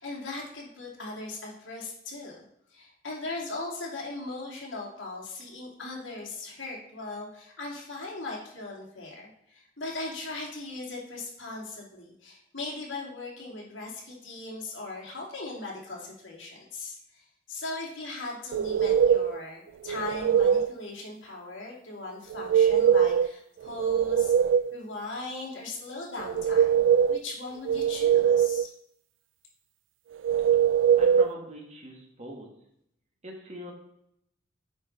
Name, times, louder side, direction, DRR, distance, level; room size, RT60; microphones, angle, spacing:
voice 1, 0.0-2.4 2.7-24.3 24.7-28.7, left 2 dB, 85° left, -3 dB, 2.6 m, -39 dB
sound 1, 18.5-19.4 19.9-20.7 22.3-23.3 23.7-24.8 26.2-27.2 27.7-28.7 30.2-31.3, right 8 dB, 70° right, 0.3 m, -22 dB
voice 2, 31.0-32.5 33.2-33.7, equal, 35° right, 0 dB, 1.8 m, -42 dB
8.7 x 5.4 x 4.0 m, 0.74 s
head